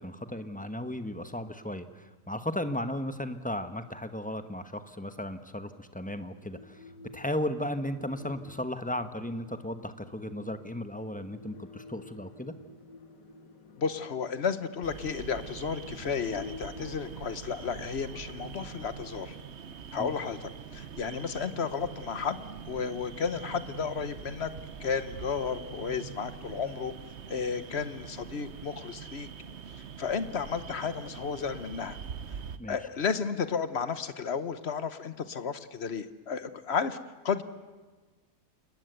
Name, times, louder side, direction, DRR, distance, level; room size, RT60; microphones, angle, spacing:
voice 1, 0.0-6.9 7.1-12.5 20.0-20.1 32.6-32.8, left 1 dB, 5° left, 9 dB, 0.9 m, -35 dB
sound 1, 4.6-17.2, left 4 dB, 90° left, 2.3 m, -51 dB
voice 2, 13.8-19.3 19.9-24.5 24.8-26.9 27.3-29.3 30.0-32.0 32.7-37.0 37.2-37.4, left 6 dB, 45° left, 13 dB, 1.2 m, -33 dB
sound 2, 14.8-32.6, right 7 dB, 50° right, 1.1 m, -43 dB
28.0 x 20.0 x 8.1 m, 1.3 s
omnidirectional pair, 1.8 m